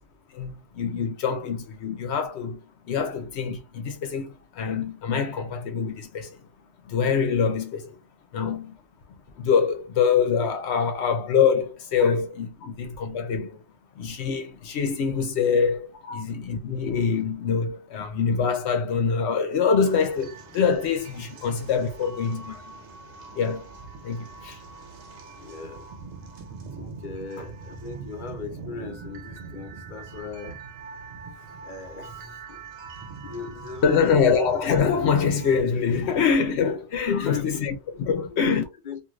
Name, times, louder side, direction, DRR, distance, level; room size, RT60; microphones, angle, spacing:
voice 1, 0.3-2.6 2.9-6.3 6.9-8.0 8.3-8.8 9.4-13.6 14.0-22.6 23.3-23.6 24.0-24.6 33.8-38.6, left 6 dB, 80° left, 0.9 m, -24 dB
sound 1, 19.8-35.6, right 4 dB, 85° right, 1.0 m, -42 dB
voice 2, 25.4-25.9 26.2-26.3 26.8-30.6 31.3-32.6 32.9-34.4 36.0-36.1 37.1-37.6 38.2-39.0, left 5 dB, 50° left, 0.9 m, -38 dB
2.6 x 2.4 x 3.0 m
omnidirectional pair, 1.1 m